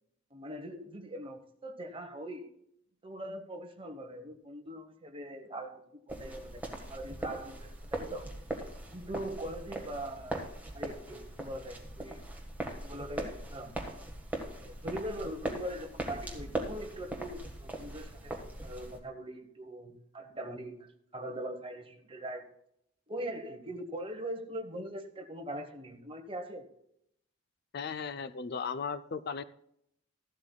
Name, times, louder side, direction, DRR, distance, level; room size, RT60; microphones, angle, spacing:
voice 1, 0.3-2.5 3.0-8.3 8.9-10.4 10.7-12.2 12.8-13.8 14.6-18.3 18.6-22.5 23.1-26.7, right 1 dB, 25° right, 5 dB, 1.1 m, -41 dB
pasos - foot steps, 6.1-19.0, right 1 dB, 10° right, 1.5 m, -40 dB
voice 2, 27.7-29.4, left 5 dB, 50° left, 13 dB, 0.4 m, -36 dB
14.5 x 12.0 x 2.3 m, 0.73 s
head